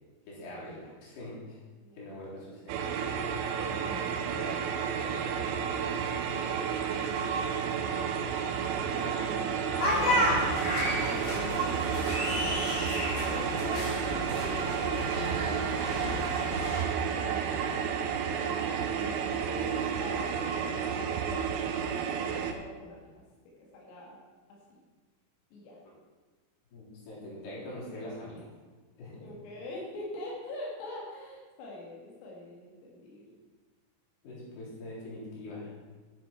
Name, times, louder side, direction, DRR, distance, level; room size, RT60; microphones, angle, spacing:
voice 1, 0.3-1.6 2.0-2.9 3.6-6.0 26.7-28.5 29.0-29.3 34.2-35.7, left 1 dB, 55° left, -7 dB, 5.7 m, -43 dB
voice 2, 1.8-2.2 3.8-4.0 7.0-7.5 8.9-10.8 11.1-13.0 13.2-13.8 14.1-15.3 17.1-17.8 18.8-23.1 23.6-24.2 24.5-24.8 25.5-25.8 29.2-33.4, left 1 dB, 90° left, -3 dB, 4.6 m, -44 dB
sound 1, 2.7-22.5, right 7 dB, 80° right, 3.4 m, -31 dB
sound 2, 9.8-16.8, left 1 dB, 35° left, 2.3 m, -31 dB
12.5 x 9.3 x 4.5 m, 1.3 s
omnidirectional pair, 5.8 m